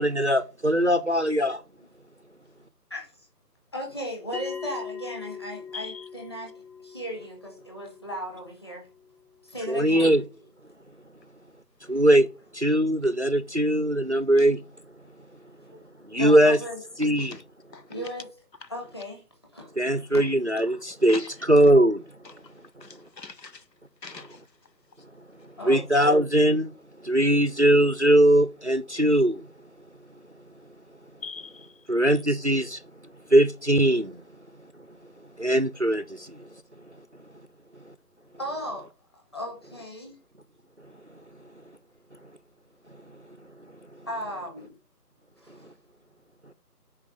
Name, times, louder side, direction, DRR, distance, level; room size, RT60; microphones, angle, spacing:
voice 1, 0.0-1.5 9.7-10.2 11.9-12.3 12.5-14.6 16.1-16.6 17.0-17.4 19.8-22.0 25.6-26.7 27.0-29.4 31.9-32.8 33.3-34.2 35.4-36.4, right 1 dB, 45° right, 0.5 m, -21 dB
voice 2, 3.7-6.5 6.8-8.9 9.4-10.2 11.9-12.0 15.7-15.8 16.1-16.8 17.9-18.3 18.7-19.2 19.5-20.3 25.6-25.8 38.4-38.9 39.3-40.2 44.1-44.7 45.4-45.6, equal, 15° left, 1.5 m, -36 dB
Bell, 4.3-9.4, left 5 dB, 65° left, 3.7 m, -42 dB
voice 3, 5.7-6.0 14.4-14.5 17.2-17.4 17.7-17.8 20.7-20.8 21.1-21.3 22.2-22.3 22.8-23.6 24.0-24.4 31.2-31.7, left 5 dB, 85° left, 1.2 m, -41 dB
7.2 x 4.7 x 6.5 m
figure-of-eight pair, 165°, 49 cm